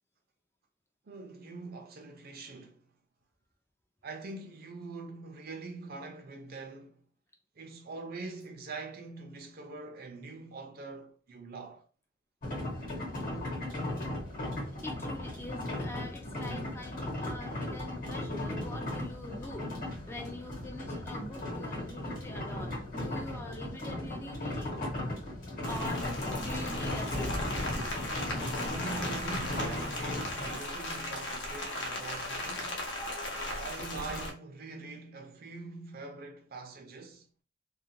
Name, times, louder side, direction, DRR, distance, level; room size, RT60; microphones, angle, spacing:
voice 1, 1.1-2.9 4.0-7.0 7.6-11.8 28.5-32.9 33.5-37.3, right 3 dB, 55° right, 0.5 m, -43 dB
sound 1, 12.4-30.6, left 1 dB, 50° left, 1.0 m, -37 dB
voice 2, 14.8-24.7 25.7-26.0 26.4-27.3, left 1 dB, 15° left, 0.4 m, -44 dB
Rain, 25.6-34.3, left 1 dB, 70° left, 0.8 m, -37 dB
2.4 x 2.2 x 2.6 m
head